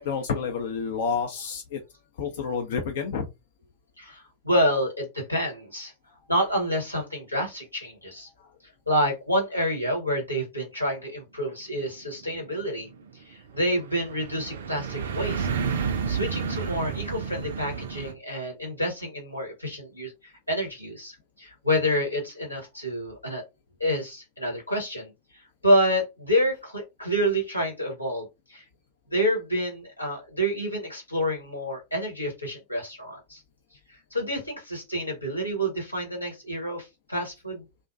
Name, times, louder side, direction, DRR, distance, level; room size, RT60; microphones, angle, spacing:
voice 1, 0.0-1.8 2.2-3.3 8.4-8.5, left 6 dB, 55° left, 0.4 m, -29 dB
voice 2, 4.0-5.9 6.3-8.3 8.9-12.9 13.2-15.5 16.1-23.4 23.8-25.1 25.6-28.6 29.1-33.4 34.1-37.7, equal, 85° left, 1.1 m, -28 dB
sound 1, 11.8-18.1, right 6 dB, 65° right, 0.3 m, -31 dB
2.4 x 2.1 x 2.5 m
figure-of-eight pair, 90°, 0 cm